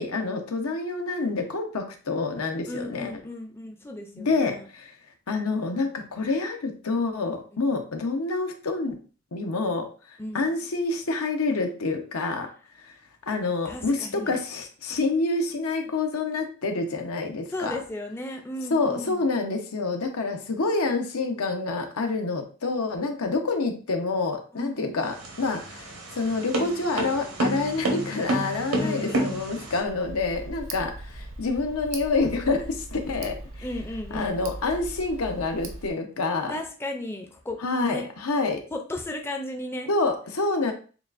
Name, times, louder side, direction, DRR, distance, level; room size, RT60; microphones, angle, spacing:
voice 1, 0.0-3.1 4.2-4.9 5.3-9.0 9.3-12.5 12.8-12.9 13.3-17.7 18.7-25.9 26.2-33.4 34.1-36.6 37.6-38.6 39.9-40.7, left 3 dB, 85° left, 4 dB, 0.8 m, -27 dB
voice 2, 2.7-4.7 10.2-10.4 13.7-14.4 17.5-19.3 24.5-24.9 28.8-29.6 33.6-34.4 36.5-37.6 37.8-38.1 38.7-39.9 40.6-40.7, left 1 dB, 10° left, 2 dB, 0.4 m, -35 dB
sound 1, 25.0-29.8, right 1 dB, 90° right, 1.2 m, -29 dB
Tick, 29.9-35.9, right 2 dB, 65° right, 0.7 m, -40 dB
6.7 x 2.4 x 2.5 m, 0.38 s
head